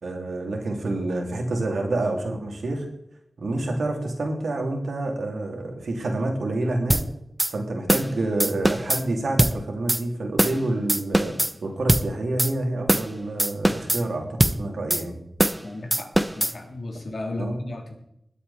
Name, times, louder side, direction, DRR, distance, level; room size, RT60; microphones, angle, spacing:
voice 1, 0.0-2.9 3.4-7.0 7.5-11.3 11.6-15.1 17.4-17.6, right 2 dB, 85° right, 1 dB, 3.1 m, -28 dB
sound 1, 6.9-7.1 7.4-7.5 7.9-8.1 8.4-9.0 9.4-9.6 9.9-10.0 10.4-10.6 10.9-11.5 11.9-12.1 12.4-12.5 12.9-13.1 13.4-14.0 14.4-14.6 14.9-15.0 15.4-15.6 15.9-16.5, right 1 dB, 10° right, 0.7 m, -21 dB
voice 2, 15.6-18.0, left 2 dB, 60° left, 2 dB, 3.1 m, -35 dB
20.5 x 8.4 x 4.3 m, 0.79 s
wide cardioid pair, 85°, 0 cm